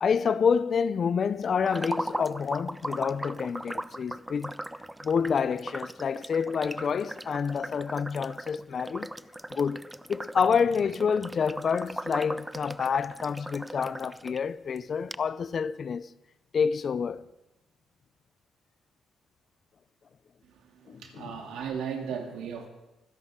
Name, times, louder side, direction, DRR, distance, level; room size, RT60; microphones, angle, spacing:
voice 1, 0.0-4.5 5.0-9.1 9.5-9.8 10.1-16.1 16.5-17.2 20.9-21.3, left 6 dB, 50° left, 0.5 m, -28 dB
sound 1, 1.6-14.4 14.8-14.9 15.1-15.2, right 1 dB, 10° right, 0.4 m, -38 dB
voice 2, 20.5-22.7, right 7 dB, 85° right, 2.6 m, -36 dB
25.5 x 11.0 x 3.7 m
cardioid pair, 90°, 0 cm